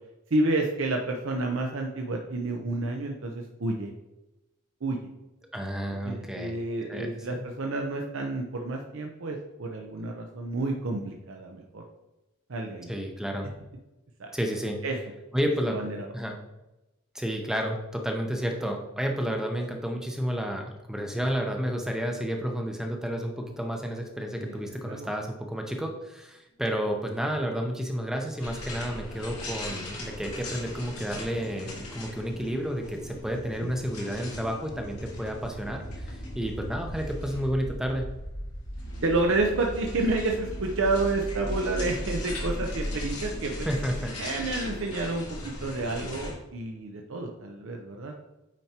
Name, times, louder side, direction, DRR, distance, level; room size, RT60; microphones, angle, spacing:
voice 1, 0.3-3.9 4.8-5.0 6.0-11.8 12.5-12.9 14.2-14.3 14.8-14.9 15.7-16.1 24.4-25.1 39.0-43.7 44.2-48.1, right 2 dB, 60° right, 1 dB, 0.6 m, -30 dB
voice 2, 5.5-6.6 6.9-7.3 12.9-13.5 14.3-14.8 15.3-15.8 16.1-16.4 17.1-38.1 43.6-44.2, equal, ahead, 2 dB, 0.6 m, -31 dB
sound 1, 28.4-46.4, left 2 dB, 85° left, 1.7 m, -41 dB
sound 2, 28.4-44.1, equal, 65° left, 1.3 m, -39 dB
9.0 x 4.5 x 2.9 m, 0.99 s
head